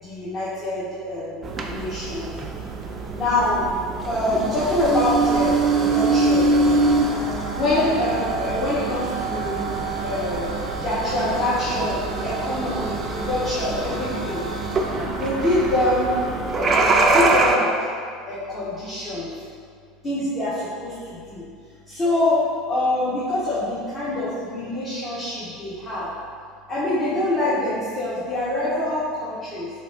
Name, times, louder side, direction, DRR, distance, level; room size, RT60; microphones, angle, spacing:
voice 1, 0.0-1.4 1.7-2.3 3.1-3.7 4.0-6.5 7.5-10.5 10.8-14.4 15.2-16.2 16.5-17.7 18.3-19.4 20.0-21.4 21.9-22.4 22.7-26.1 26.7-29.7, left 1 dB, 30° left, -10 dB, 0.9 m, -25 dB
sound 1, 1.4-17.6, right 3 dB, 30° right, 0.4 m, -24 dB
sound 2, 5.2-16.2, right 1 dB, 85° right, 0.5 m, -38 dB
3.5 x 3.3 x 2.6 m, 2.2 s
figure-of-eight pair, 70°, 0 cm